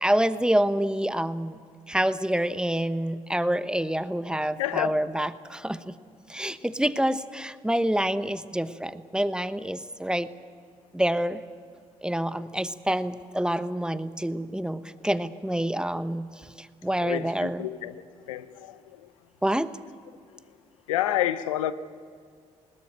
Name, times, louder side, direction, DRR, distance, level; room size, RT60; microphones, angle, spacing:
voice 1, 0.0-1.6 1.9-5.9 6.3-10.3 10.9-11.4 12.0-17.7 19.4-19.8, right 1 dB, 5° right, 1.0 m, -27 dB
voice 2, 4.6-4.9 17.0-17.9 18.3-18.7 20.9-21.7, left 12 dB, 85° left, 0.6 m, -28 dB
21.0 x 18.5 x 9.1 m
hypercardioid pair, 45°, 17 cm